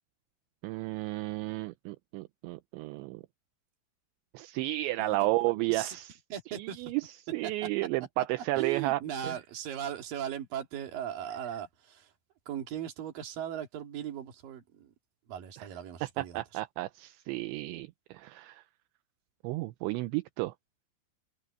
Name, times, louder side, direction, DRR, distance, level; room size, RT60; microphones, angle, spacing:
voice 1, 0.6-3.2 4.3-6.2 6.5-9.4 15.6-15.7 16.2-18.6 19.4-20.5, right 19 dB, 80° right, 2.8 m, -33 dB
voice 2, 5.0-6.0 6.3-6.9 8.6-12.1 12.5-14.9 15.3-16.4, right 10 dB, 50° right, 3.6 m, -38 dB
omnidirectional pair, 5.7 m